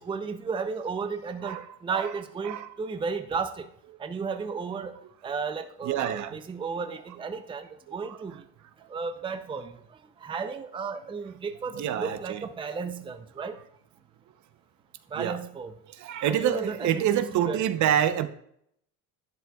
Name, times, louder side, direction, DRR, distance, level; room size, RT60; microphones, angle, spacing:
voice 1, 0.1-3.7 4.0-4.9 5.2-8.4 8.9-9.7 10.2-13.6 15.1-15.7 16.3-17.6, right 5 dB, 15° right, 8 dB, 0.6 m, -33 dB
voice 2, 5.8-6.3 8.1-8.2 11.7-12.4 15.2-15.4 16.0-18.3, right 10 dB, 55° right, 10 dB, 0.9 m, -27 dB
11.5 x 10.0 x 2.4 m, 0.71 s
cardioid pair, 115°, 34 cm